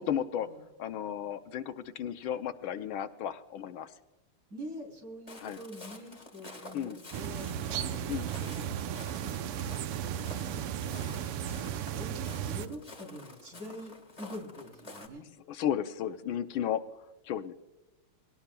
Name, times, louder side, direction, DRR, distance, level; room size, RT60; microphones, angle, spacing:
voice 1, 0.0-0.5 0.8-3.9 5.4-5.6 6.7-7.0 8.1-8.3 15.5-16.8 17.2-17.5, left 9 dB, 75° left, 10 dB, 1.4 m, -34 dB
voice 2, 4.5-15.3, equal, 45° right, 3 dB, 3.5 m, -46 dB
Walk footsteps, 5.3-15.1, left 2 dB, 20° left, 1.2 m, -50 dB
sound 1, 7.1-12.7, right 9 dB, 85° right, 1.7 m, -35 dB
20.0 x 18.0 x 2.2 m, 1.1 s
omnidirectional pair, 2.4 m